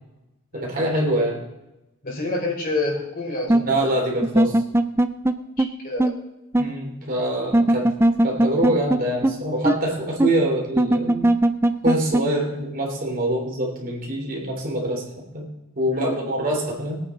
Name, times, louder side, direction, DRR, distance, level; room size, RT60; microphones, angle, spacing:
voice 1, 0.5-1.4 3.6-4.6 6.6-7.9 8.2-11.3 11.8-15.0 15.3-15.5 15.7-17.0, right 1 dB, 40° right, -1 dB, 3.4 m, -24 dB
voice 2, 2.0-3.9 5.6-6.2 12.5-12.6 15.9-16.3, left 2 dB, 45° left, -1 dB, 3.7 m, -29 dB
sound 1, 3.5-3.6 4.2-5.3 5.6-5.7 6.0-6.1 6.5-6.7 7.5-9.0 9.2-9.3 9.6-9.8 10.2-10.3 10.8-12.2, right 1 dB, 10° right, 0.4 m, -17 dB
21.5 x 9.1 x 3.9 m, 0.96 s
head